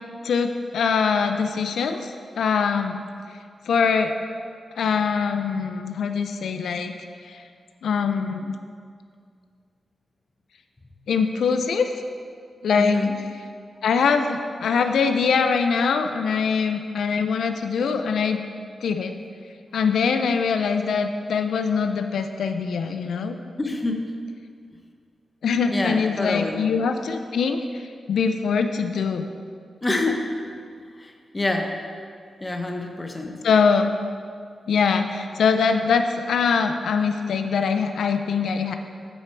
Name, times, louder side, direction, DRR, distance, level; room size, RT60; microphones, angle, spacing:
voice 1, 0.2-3.0 3.3-3.4 3.7-4.1 4.8-6.9 7.3-7.4 7.8-8.6 11.1-11.9 12.6-13.0 13.8-18.4 18.8-19.2 19.7-23.4 25.4-29.3 33.4-33.9 34.7-38.8, left 5 dB, 85° left, 7 dB, 0.4 m, -23 dB
voice 2, 12.8-13.2 23.6-24.1 25.7-26.6 29.8-30.2 30.9-31.7 32.4-33.4, left 2 dB, 20° left, 3 dB, 0.7 m, -26 dB
8.7 x 5.8 x 4.5 m, 2.2 s
wide cardioid pair, 135°, 0 cm